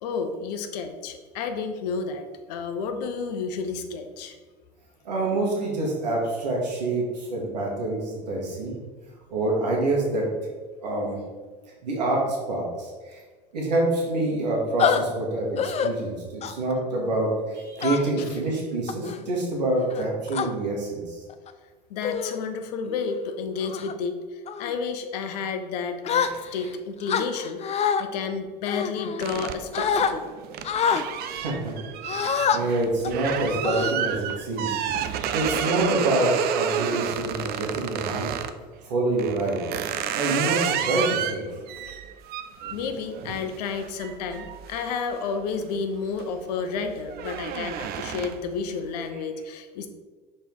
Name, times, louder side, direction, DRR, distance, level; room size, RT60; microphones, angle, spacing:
voice 1, 0.0-4.4 21.9-26.3 26.5-30.3 42.7-49.9, left 5 dB, 75° left, 6 dB, 0.8 m, -31 dB
voice 2, 5.1-8.7 9.3-10.3 10.8-11.2 11.8-13.2 13.5-21.2 26.2-26.7 31.3-31.7 32.1-34.7 35.3-38.3 38.9-39.6 40.1-41.4 49.1-49.2, right 2 dB, 85° right, -2 dB, 1.8 m, -26 dB
sound 1, 14.8-15.0 15.6-15.9 16.4-16.7 17.8-18.3 18.9-19.2 19.9-20.5 21.3-21.5 22.0-22.4 22.9-23.1 23.6-23.9 24.5-24.7 26.0-26.7 27.1-28.0 28.7-29.4 29.7-30.1 30.6-31.0 32.1-32.6 33.0-33.2 33.6-34.3, left 7 dB, 30° left, 0.5 m, -26 dB
sound 2, 29.2-38.6 39.2-45.6 46.0-46.4 46.7-48.6, right 9 dB, 50° right, 0.5 m, -31 dB
5.4 x 4.3 x 4.7 m, 1.4 s
hypercardioid pair, 80°, 21 cm